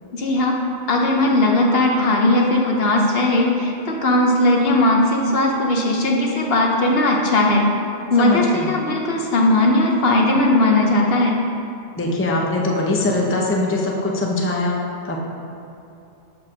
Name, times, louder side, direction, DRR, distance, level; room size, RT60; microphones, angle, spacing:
voice 1, 0.1-0.6 0.9-7.6 8.1-11.4, left 1 dB, 60° left, 0 dB, 0.9 m, -18 dB
voice 2, 8.2-8.7 12.0-14.8 15.0-15.3, left 2 dB, 15° left, -1 dB, 0.6 m, -22 dB
5.8 x 4.8 x 6.3 m, 2.8 s
omnidirectional pair, 1.2 m